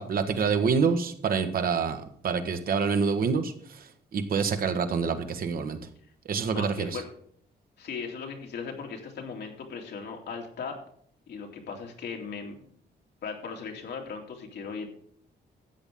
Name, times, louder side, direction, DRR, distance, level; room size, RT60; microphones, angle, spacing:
voice 1, 0.0-5.8 6.3-7.0, right 5 dB, 55° right, 7 dB, 1.3 m, -27 dB
voice 2, 6.5-7.1 7.8-10.8 11.3-12.6 13.2-14.9, left 5 dB, 75° left, 2 dB, 2.6 m, -37 dB
13.0 x 9.0 x 3.7 m, 0.62 s
wide cardioid pair, 175°, 18 cm